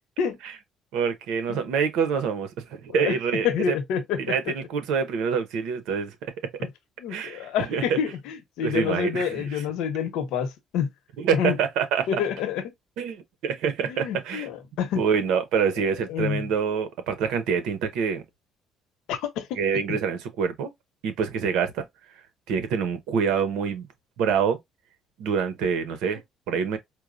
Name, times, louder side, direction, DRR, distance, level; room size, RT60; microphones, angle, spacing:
voice 1, 0.9-3.7 4.3-6.2 7.1-8.0 8.6-9.6 11.2-12.2 13.0-14.5 15.0-18.2 19.5-20.7 21.0-21.8 22.5-23.9 24.2-24.6 25.2-26.2 26.5-26.8, right 6 dB, 90° right, 0.8 m, -26 dB
voice 2, 3.4-4.3 6.6-6.7 7.0-10.9 11.3-11.6 12.1-12.6 13.9-15.0 15.8-16.5 19.1-19.6 19.9-20.0, left 8 dB, 90° left, 0.9 m, -28 dB
4.5 x 2.1 x 2.5 m
cardioid pair, 130°, 0 cm